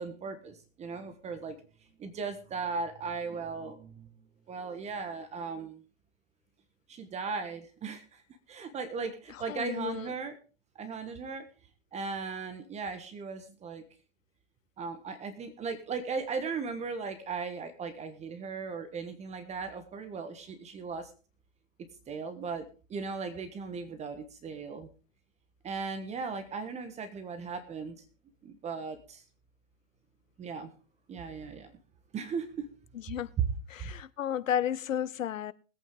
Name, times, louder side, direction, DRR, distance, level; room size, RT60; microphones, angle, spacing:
voice 1, 0.0-1.6 2.0-4.1 4.5-5.8 6.9-8.2 8.5-10.4 10.7-11.5 11.9-13.8 14.8-21.1 21.8-24.9 25.6-27.9 28.4-29.2 30.4-30.7 31.1-31.7 32.1-32.7 33.4-33.5 33.8-33.9, right 5 dB, 15° right, 1.4 m, -37 dB
voice 2, 9.5-10.1 33.1-33.3 33.7-35.5, left 10 dB, 85° left, 0.9 m, -32 dB
20.0 x 8.7 x 3.8 m
hypercardioid pair, 135°, 39 cm